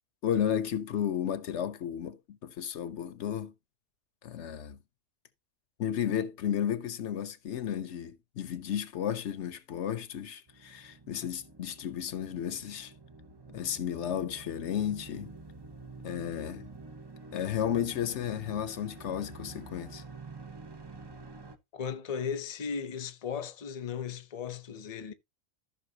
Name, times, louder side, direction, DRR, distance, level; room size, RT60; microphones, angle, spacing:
voice 1, 0.2-3.5 4.2-4.8 5.8-12.9 13.5-15.3 16.0-16.7 17.3-20.0, left 9 dB, 80° left, 1.1 m, -33 dB
sound 1, 10.5-21.6, right 3 dB, 25° right, 0.7 m, -48 dB
voice 2, 21.7-25.1, left 6 dB, 40° left, 0.8 m, -36 dB
14.0 x 5.9 x 2.8 m
omnidirectional pair, 1.2 m